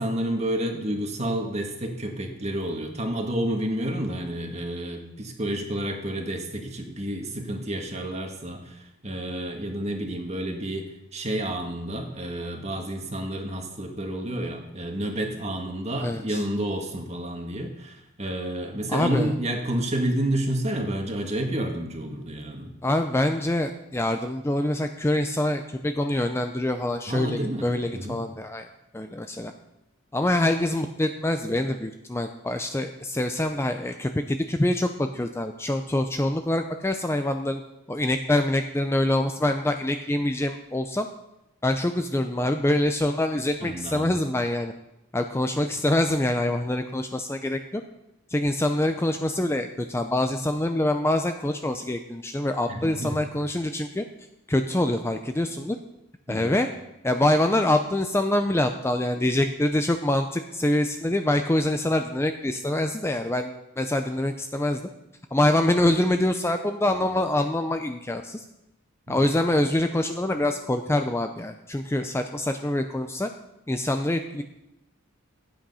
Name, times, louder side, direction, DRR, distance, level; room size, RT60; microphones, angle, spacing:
voice 1, 0.0-10.9 11.1-22.7 27.1-28.2 43.6-44.2 52.7-53.2 56.3-56.5 69.1-69.3, right 1 dB, 30° right, 3 dB, 1.7 m, -30 dB
voice 2, 16.0-16.4 18.9-19.3 22.8-28.7 28.9-29.5 30.1-37.6 37.9-41.1 41.6-44.7 45.1-47.8 48.3-54.0 54.5-55.8 56.3-56.7 57.0-64.9 65.3-68.4 69.1-73.3 73.7-74.4, left 1 dB, 10° left, 6 dB, 0.5 m, -25 dB
13.0 x 8.8 x 5.6 m, 0.89 s
head